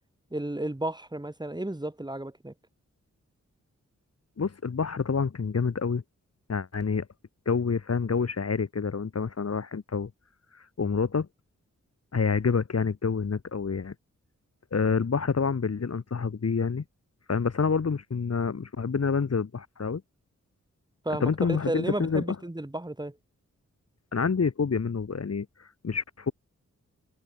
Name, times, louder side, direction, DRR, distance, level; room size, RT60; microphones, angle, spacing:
voice 1, 0.3-2.5 21.0-23.2, right 1 dB, 15° right, 5.1 m, -33 dB
voice 2, 4.4-6.0 6.5-7.1 7.5-10.1 10.8-11.3 12.1-13.9 14.7-16.8 17.3-20.0 21.2-22.2 24.1-26.3, left 5 dB, 55° left, 2.3 m, -27 dB
wide cardioid pair, 80°, 30 cm